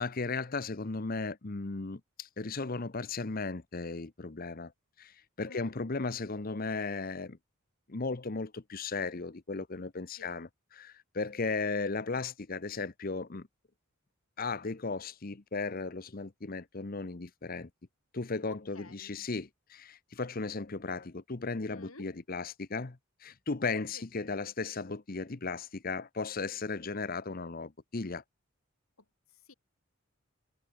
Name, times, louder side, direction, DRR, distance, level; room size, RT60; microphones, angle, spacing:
voice 1, 0.0-4.7 5.0-7.4 7.9-13.5 14.4-17.7 18.1-28.2, left 4 dB, 45° left, 0.9 m, -36 dB
voice 2, 5.5-5.8 10.1-10.3 18.5-19.2 21.7-22.1 23.9-24.1 29.0-29.5, left 2 dB, 85° left, 5.2 m, -53 dB
head